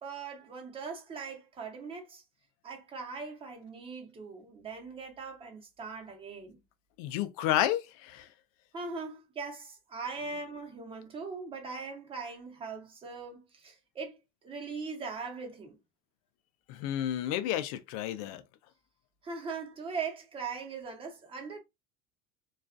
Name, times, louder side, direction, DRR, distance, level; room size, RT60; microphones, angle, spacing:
voice 1, 0.0-2.2 2.6-6.6 8.7-15.8 19.2-21.6, right 4 dB, 30° right, 0.8 m, -40 dB
voice 2, 7.0-8.3 16.7-18.4, left 12 dB, 80° left, 0.4 m, -31 dB
2.3 x 2.2 x 2.5 m
supercardioid pair, 115°, 18 cm